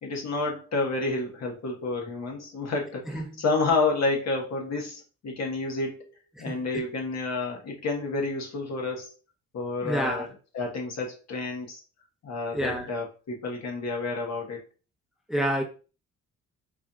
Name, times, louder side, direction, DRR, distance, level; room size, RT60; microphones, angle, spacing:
voice 1, 0.0-6.0 6.4-9.1 9.5-10.3 10.5-11.8 12.2-14.6, left 3 dB, 60° left, 1.4 m, -30 dB
voice 2, 3.1-3.4 6.4-6.6 9.8-10.3 12.5-12.9 15.3-15.6, equal, ahead, 0.8 m, -28 dB
4.8 x 2.8 x 2.4 m
cardioid pair, 70°, 30 cm